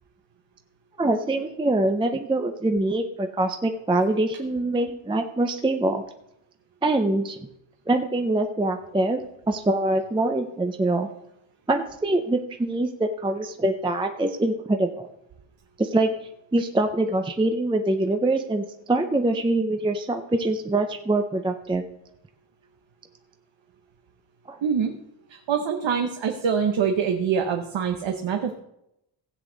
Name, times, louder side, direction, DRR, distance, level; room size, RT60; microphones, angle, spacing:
voice 1, 1.0-6.0 6.8-7.4 7.9-9.2 9.5-11.1 11.7-15.1 15.8-16.1 16.5-21.8 24.5-24.6, right 2 dB, 10° right, 5 dB, 0.5 m, -24 dB
voice 2, 24.6-24.9 25.3-28.6, right 7 dB, 75° right, 4 dB, 1.0 m, -25 dB
16.0 x 8.1 x 3.9 m, 0.81 s
wide cardioid pair, 175°, 46 cm